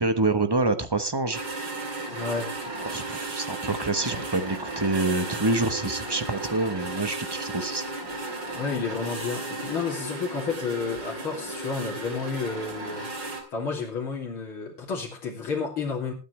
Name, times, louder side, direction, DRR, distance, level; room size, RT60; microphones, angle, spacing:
voice 1, 0.0-1.4 2.9-7.8, right 2 dB, 25° right, 9 dB, 0.5 m, -26 dB
sound 1, 1.3-13.4, right 2 dB, 60° right, 3.6 m, -35 dB
voice 2, 2.1-2.5 8.5-13.1 13.5-16.1, left 5 dB, 90° left, -3 dB, 3.8 m, -31 dB
21.0 x 9.3 x 3.3 m, 0.32 s
omnidirectional pair, 2.2 m